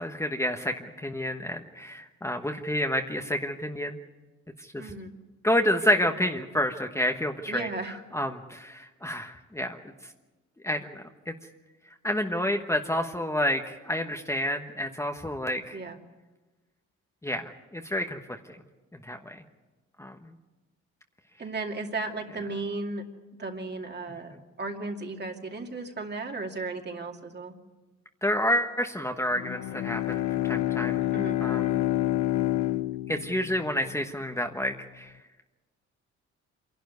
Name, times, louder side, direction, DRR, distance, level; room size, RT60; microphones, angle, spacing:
voice 1, 0.0-4.0 4.6-4.9 5.4-9.8 10.6-11.3 12.0-15.8 17.2-18.6 19.0-19.4 20.0-20.3 28.2-31.0 31.4-31.9 33.1-35.1, left 1 dB, 10° left, 4 dB, 1.2 m, -29 dB
voice 2, 4.8-5.1 7.5-8.0 15.7-16.0 21.4-23.0 23.4-27.5 31.1-31.4, right 3 dB, 35° right, 3 dB, 2.5 m, -35 dB
Bowed string instrument, 29.3-34.1, left 15 dB, 70° left, 0.8 m, -28 dB
26.0 x 12.0 x 9.5 m, 1.2 s
cardioid pair, 90°, 30 cm